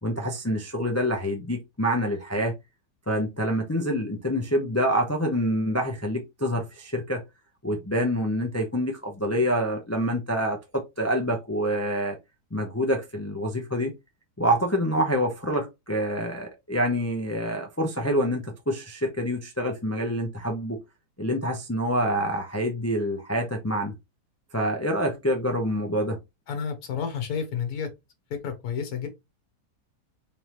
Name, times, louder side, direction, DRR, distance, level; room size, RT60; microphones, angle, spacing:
voice 1, 0.0-2.5 3.1-7.2 7.6-12.2 12.5-13.9 14.4-20.8 21.2-23.9 24.5-26.2, equal, 20° left, 0.4 m, -26 dB
voice 2, 26.5-27.9 28.3-29.1, left 7 dB, 70° left, 1.5 m, -30 dB
3.9 x 3.4 x 3.0 m
omnidirectional pair, 1.7 m